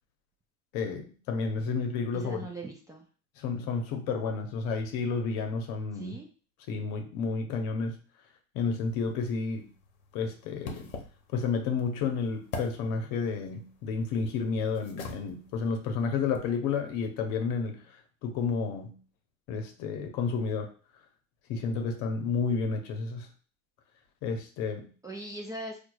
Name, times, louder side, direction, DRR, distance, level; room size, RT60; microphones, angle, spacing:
voice 1, 0.7-2.5 3.4-6.2 6.7-8.0 8.5-9.7 10.1-10.9 11.3-18.0 18.2-19.0 19.5-20.7 21.5-23.3 24.2-24.9, left 5 dB, 60° left, 6 dB, 0.9 m, -31 dB
voice 2, 2.1-3.1 5.9-6.3 25.0-25.8, right 1 dB, 10° right, -1 dB, 0.4 m, -40 dB
sound 1, 8.9-16.6, left 3 dB, 90° left, 0.8 m, -46 dB
4.5 x 2.3 x 2.3 m, 0.38 s
hypercardioid pair, 95°, 40 cm